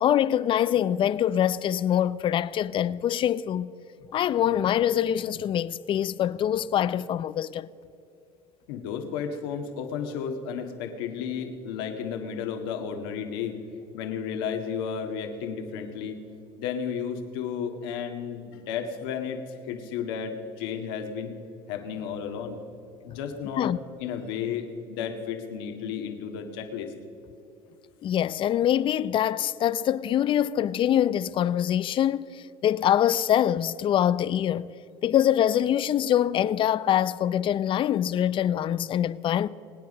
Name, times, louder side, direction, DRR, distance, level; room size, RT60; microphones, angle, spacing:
voice 1, 0.0-3.7 4.1-7.7 23.6-23.8 28.0-34.7 35.0-39.5, left 10 dB, 45° left, 0.5 m, -24 dB
voice 2, 8.7-13.6 13.9-16.3 16.6-21.3 21.7-22.6 23.0-23.7 24.0-26.9, left 7 dB, 80° left, 1.8 m, -33 dB
24.0 x 9.7 x 5.3 m
supercardioid pair, 90°, 12 cm